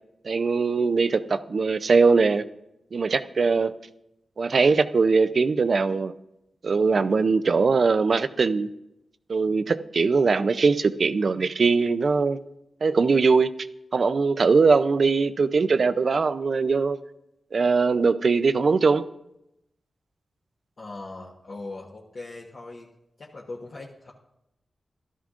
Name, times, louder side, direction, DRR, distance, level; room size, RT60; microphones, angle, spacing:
voice 1, 0.2-2.4 2.9-3.7 4.4-6.1 6.6-8.7 9.3-12.4 12.8-13.5 13.9-17.0 17.5-19.0, right 4 dB, 55° right, 12 dB, 0.5 m, -21 dB
voice 2, 20.8-22.9 23.2-24.1, left 2 dB, 50° left, -3 dB, 1.2 m, -40 dB
13.5 x 12.5 x 2.5 m, 0.85 s
wide cardioid pair, 95°, 0 cm